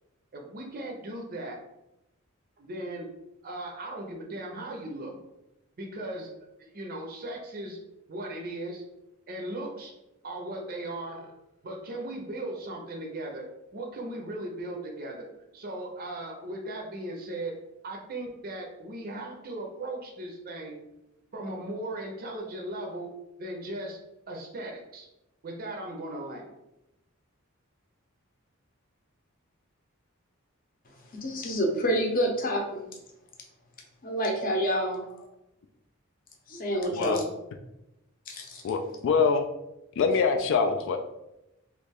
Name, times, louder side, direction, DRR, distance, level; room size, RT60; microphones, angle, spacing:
voice 1, 0.3-1.6 2.6-3.1 3.4-5.2 5.8-6.3 6.6-7.8 8.1-8.8 9.3-9.9 10.2-11.3 11.6-13.4 13.7-15.3 15.5-17.5 17.8-20.8 21.3-23.1 23.4-24.0 24.3-25.1 25.4-26.5, right 1 dB, 45° right, 1 dB, 0.5 m, -37 dB
voice 2, 31.1-32.9 34.0-35.0 36.5-37.2 38.3-38.6, equal, 40° left, 1 dB, 0.7 m, -28 dB
voice 3, 38.6-39.4 40.0-41.0, left 5 dB, 60° left, 4 dB, 0.3 m, -24 dB
3.1 x 2.4 x 3.4 m, 0.90 s
head